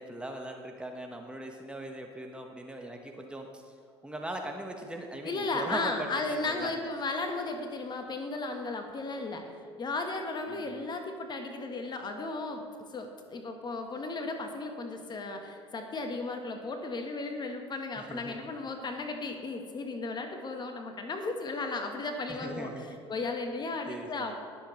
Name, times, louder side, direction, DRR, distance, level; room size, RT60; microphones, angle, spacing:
voice 1, 0.0-3.7 4.0-6.8 10.5-10.8 17.9-18.6 22.3-23.0 23.9-24.3, right 1 dB, 5° right, 2 dB, 1.4 m, -40 dB
voice 2, 5.2-9.5 9.8-12.7 12.9-22.7 23.1-24.3, left 3 dB, 30° left, 5 dB, 1.4 m, -35 dB
21.0 x 7.9 x 3.2 m, 2.4 s
figure-of-eight pair, 70°, 15 cm